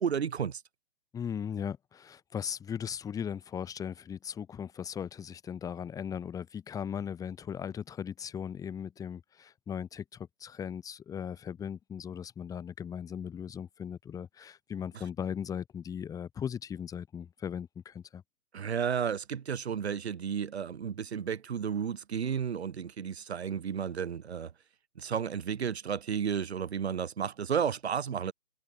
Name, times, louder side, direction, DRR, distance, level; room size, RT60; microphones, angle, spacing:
voice 1, 0.0-0.6 18.5-24.5 25.0-28.3, right 7 dB, 90° right, 0.7 m, -32 dB
voice 2, 1.1-18.2, left 8 dB, 10° left, 2.1 m, -38 dB
hypercardioid pair, 140°, 31 cm